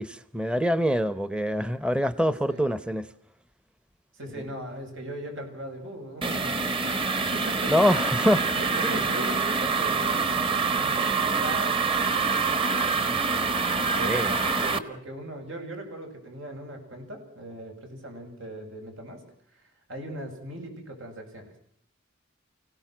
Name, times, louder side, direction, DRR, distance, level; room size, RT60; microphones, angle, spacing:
voice 1, 0.0-3.1 7.7-8.4 8.8-9.0 14.0-14.3, equal, 5° right, 0.8 m, -25 dB
voice 2, 2.2-2.6 4.2-8.1 8.5-13.4 14.0-19.2 19.9-21.5, right 1 dB, 85° right, 7.8 m, -39 dB
sound 1, 6.2-14.8, right 4 dB, 25° right, 1.3 m, -26 dB
29.5 x 17.5 x 6.1 m
head